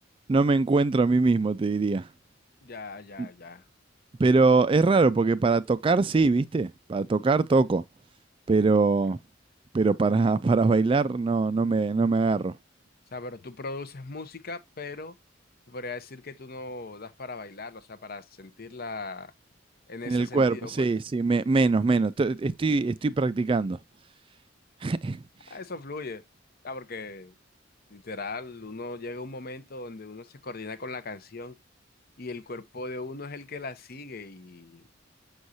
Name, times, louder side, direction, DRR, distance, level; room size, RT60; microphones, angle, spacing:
voice 1, 0.3-2.1 3.2-3.3 4.2-7.8 8.5-9.2 9.7-12.5 20.1-23.8 24.8-25.2, right 3 dB, 30° right, 0.3 m, -23 dB
voice 2, 2.6-3.6 13.1-15.2 15.7-19.3 19.9-20.9 25.5-26.2 26.6-27.3 27.9-31.6 32.2-34.8, left 3 dB, 50° left, 0.8 m, -39 dB
6.3 x 6.3 x 2.6 m
head